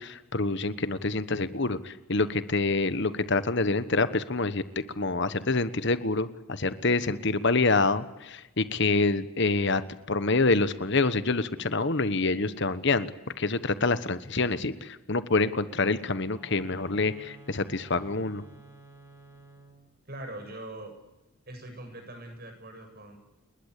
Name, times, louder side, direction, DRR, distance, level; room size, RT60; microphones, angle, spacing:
voice 1, 0.0-9.8 10.1-13.1 13.4-18.4, left 3 dB, 55° left, 13 dB, 1.3 m, -26 dB
sound 1, 16.3-19.9, right 3 dB, 10° right, 6.7 m, -52 dB
voice 2, 20.1-20.9 21.5-23.2, right 1 dB, 45° right, 5 dB, 7.8 m, -42 dB
30.0 x 21.0 x 8.3 m, 1.0 s
head